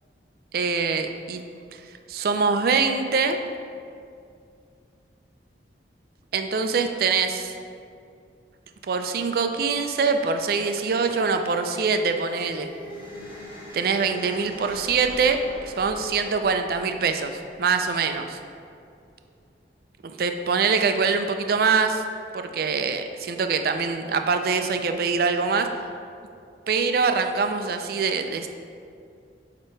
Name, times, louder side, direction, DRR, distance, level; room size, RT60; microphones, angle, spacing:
voice 1, 0.5-1.4 1.7-1.8 2.1-3.4 6.3-7.5 8.9-12.7 13.7-18.4 20.0-22.0 22.3-25.7 26.7-28.5, right 5 dB, 55° right, 7 dB, 0.4 m, -24 dB
sound 1, 9.4-18.6, left 1 dB, 30° left, 1.0 m, -43 dB
7.6 x 2.9 x 4.4 m, 2.4 s
head